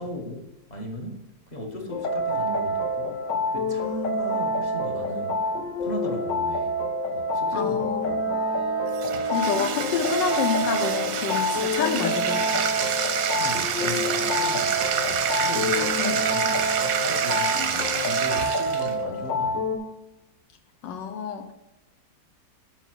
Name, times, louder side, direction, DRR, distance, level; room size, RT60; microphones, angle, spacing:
voice 1, 0.0-3.2 3.5-5.5 5.8-6.7 7.1-8.2 13.4-19.7, equal, 30° left, 2 dB, 1.0 m, -37 dB
sound 1, 1.9-19.8, equal, 60° left, 0.8 m, -27 dB
voice 2, 7.5-8.4 9.3-12.7 16.0-16.1 20.8-21.5, left 6 dB, 75° left, 5 dB, 1.3 m, -28 dB
Bowed string instrument, 8.0-12.0, equal, 90° right, 1.4 m, -39 dB
Bathtub (filling or washing), 8.9-19.0, right 8 dB, 65° right, 0.9 m, -28 dB
7.4 x 5.6 x 4.5 m, 0.93 s
omnidirectional pair, 2.0 m